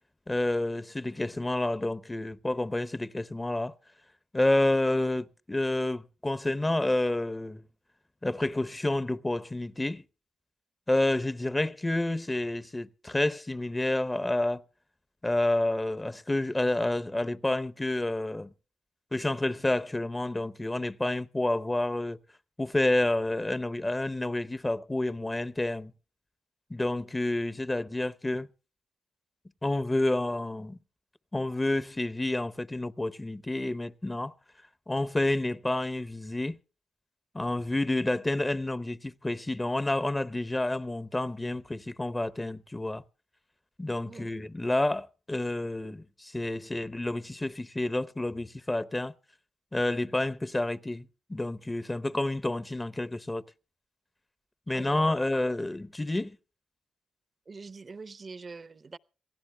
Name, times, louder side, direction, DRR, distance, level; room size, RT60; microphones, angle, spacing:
voice 1, 0.3-3.7 4.3-7.6 8.2-10.0 10.9-14.6 15.2-18.5 19.1-22.2 22.6-25.9 26.7-28.5 29.6-30.8 31.3-34.3 34.9-36.6 37.3-43.0 43.8-49.1 49.7-53.4 54.7-56.4, left 2 dB, 20° left, 0.8 m, -29 dB
voice 2, 54.7-55.2 57.5-59.0, right 4 dB, 45° right, 0.7 m, -44 dB
27.0 x 17.5 x 2.2 m
supercardioid pair, 45°, 0 cm